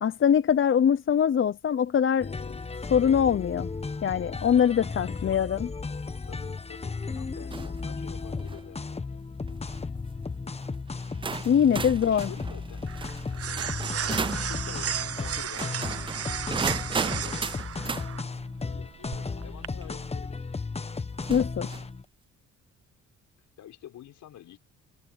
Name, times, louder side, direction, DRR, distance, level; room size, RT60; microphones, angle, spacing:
voice 1, 0.0-2.4 2.9-3.7 4.0-5.7 11.4-12.3 21.3-21.7, left 8 dB, 40° left, 0.8 m, -23 dB
sound 1, 2.2-22.0, left 4 dB, 20° left, 1.1 m, -35 dB
voice 2, 4.9-5.5 6.2-9.3 11.9-12.9 14.0-17.7 18.0-20.6 23.6-24.6, left 11 dB, 75° left, 6.4 m, -48 dB
sound 2, 7.5-7.8 8.3-8.6 9.5-9.8 10.6-10.7 11.2-14.5 15.5-18.1 19.8-19.9 21.2-21.9, right 5 dB, 20° right, 0.4 m, -35 dB
sound 3, 11.2-19.7, right 9 dB, 50° right, 1.0 m, -35 dB
cardioid pair, 90°, 30 cm